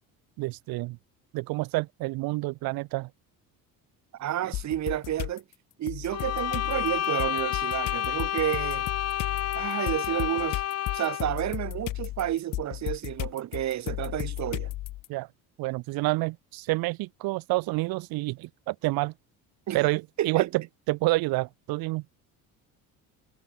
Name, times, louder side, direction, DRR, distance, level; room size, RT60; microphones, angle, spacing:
voice 1, 0.4-1.0 1.3-3.1 15.1-15.3 15.6-19.1 19.7-20.6 20.9-22.0, right 21 dB, 80° right, 3.7 m, -28 dB
voice 2, 4.2-5.4 5.8-8.8 9.5-10.6 10.9-14.7 19.7-19.8 20.2-20.5, right 12 dB, 50° right, 5.9 m, -30 dB
sound 1, 4.5-5.4 5.9-15.1, left 16 dB, 65° left, 2.5 m, -35 dB
sound 2, 6.1-11.4, left 12 dB, 45° left, 1.7 m, -30 dB
cardioid pair, 150°, 35 cm